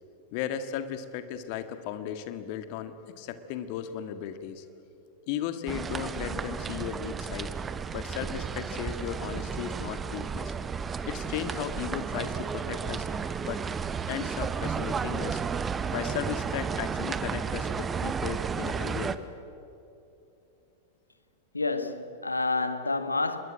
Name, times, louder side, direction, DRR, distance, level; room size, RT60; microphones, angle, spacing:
voice 1, 0.3-4.7 5.3-7.5 7.9-10.5 11.0-13.1 13.4-13.6 14.1-15.4 15.9-19.3, left 9 dB, 45° left, 1.8 m, -36 dB
sound 1, 5.7-19.2, right 6 dB, 20° right, 1.0 m, -33 dB
voice 2, 21.5-23.4, left 3 dB, 80° left, 1.4 m, -29 dB
26.0 x 21.5 x 9.0 m
figure-of-eight pair, 90°, 0 cm